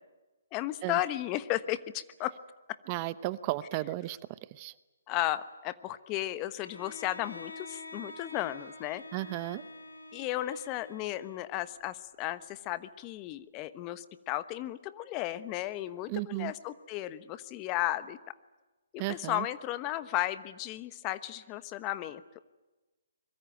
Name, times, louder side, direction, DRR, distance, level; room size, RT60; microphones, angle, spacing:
voice 1, 0.5-2.3 5.1-9.0 10.1-18.2 18.9-22.2, left 15 dB, 25° left, 14 dB, 1.1 m, -34 dB
voice 2, 2.9-4.7 9.1-9.6 16.1-16.5 19.0-19.5, right 18 dB, 30° right, 16 dB, 0.8 m, -34 dB
Bowed string instrument, 6.6-11.6, left 2 dB, 90° left, 4.9 m, -47 dB
24.5 x 22.5 x 9.1 m, 1.1 s
hypercardioid pair, 140°, 0 cm